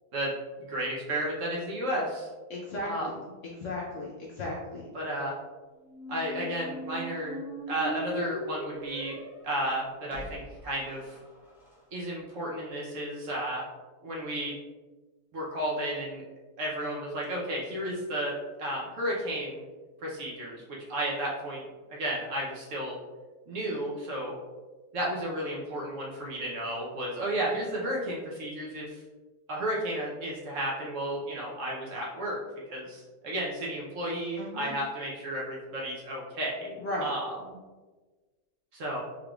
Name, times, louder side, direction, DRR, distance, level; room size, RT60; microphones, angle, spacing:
voice 1, 0.6-2.3 2.8-3.3 4.9-5.3 6.1-7.4 7.7-9.1 9.4-11.2 11.9-13.7 14.0-14.5 15.3-16.2 16.6-18.3 18.6-19.6 20.0-20.6 20.9-21.6 21.9-23.0 23.5-24.4 24.9-29.0 29.5-32.4 32.7-37.6 38.7-39.0, right 1 dB, 60° right, -4 dB, 0.9 m, -33 dB
voice 2, 2.5-3.1 3.6-4.8 34.4-34.7 36.8-37.1, left 1 dB, 65° left, -4 dB, 0.7 m, -35 dB
sound 1, 5.8-11.7, right 1 dB, ahead, 0.8 m, -40 dB
3.7 x 3.4 x 2.3 m, 1.3 s
omnidirectional pair, 1.8 m